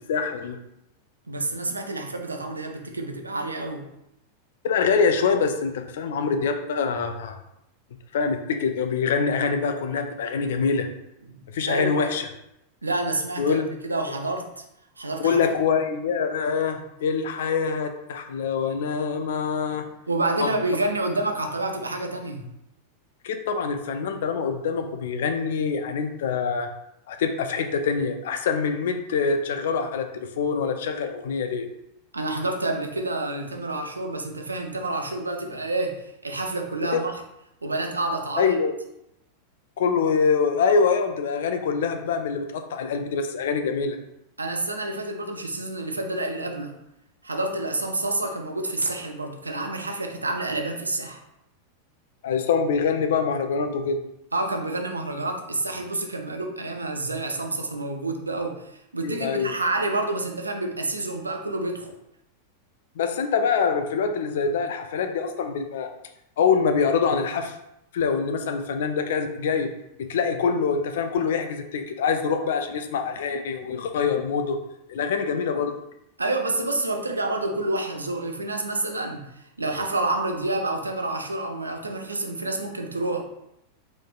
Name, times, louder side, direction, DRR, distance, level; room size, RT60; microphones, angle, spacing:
voice 1, 0.1-0.6 4.6-7.4 8.1-10.9 11.5-12.2 13.4-13.7 15.2-19.9 20.4-20.5 23.2-26.7 27.1-30.1 30.4-31.7 36.9-37.0 38.4-38.7 39.8-44.0 52.2-54.0 59.0-59.5 63.0-65.9 66.4-67.5 67.9-69.7 70.1-74.6 74.9-75.7, left 5 dB, 60° left, 6 dB, 0.4 m, -24 dB
voice 2, 1.3-3.9 11.3-12.1 12.8-13.6 13.9-14.6 15.0-15.4 20.1-22.5 32.1-37.2 37.6-38.5 44.4-46.8 47.2-51.2 54.3-61.9 76.2-83.2, right 2 dB, 80° right, 4 dB, 0.5 m, -28 dB
4.1 x 3.2 x 2.4 m, 0.83 s
figure-of-eight pair, 90°, 0 cm